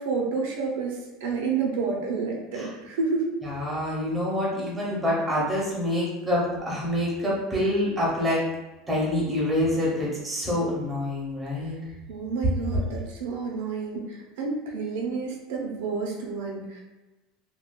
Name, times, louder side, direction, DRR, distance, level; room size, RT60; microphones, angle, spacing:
voice 1, 0.0-3.3 12.1-16.8, right 4 dB, 85° right, -1 dB, 0.7 m, -29 dB
voice 2, 3.4-8.4 8.9-11.8, left 1 dB, 5° right, -6 dB, 0.8 m, -26 dB
3.7 x 2.3 x 2.4 m, 1.1 s
cardioid pair, 170°, 0 cm